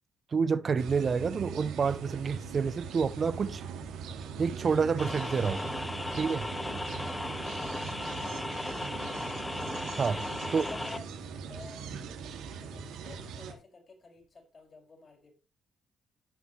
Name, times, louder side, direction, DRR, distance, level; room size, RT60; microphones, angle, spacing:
voice 1, 0.3-3.6 4.4-5.7 6.2-6.5 10.0-10.2 10.5-10.7, right 5 dB, 45° right, 0.6 m, -28 dB
sound 1, 0.8-13.5, right 6 dB, 90° right, 2.5 m, -41 dB
sound 2, 5.0-11.0, left 2 dB, 10° left, 0.5 m, -36 dB
voice 2, 7.9-8.6 10.5-11.1 11.4-15.3, left 3 dB, 40° left, 6.1 m, -51 dB
17.5 x 6.2 x 3.2 m
cardioid pair, 90°, 0 cm